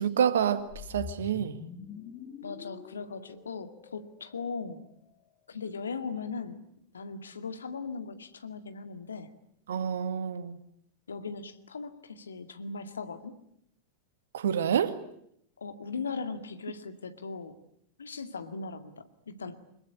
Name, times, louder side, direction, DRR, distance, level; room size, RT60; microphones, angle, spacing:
voice 1, 0.0-1.6 9.7-10.6 14.3-15.0, right 8 dB, 60° right, 2.0 m, -28 dB
sound 1, 0.7-4.9, left 8 dB, 35° left, 2.2 m, -45 dB
voice 2, 2.4-4.9 5.5-6.6 6.9-9.4 11.1-13.4 15.6-17.6 18.0-19.7, left 4 dB, 70° left, 2.2 m, -39 dB
25.0 x 22.0 x 10.0 m
figure-of-eight pair, 90°, 0 cm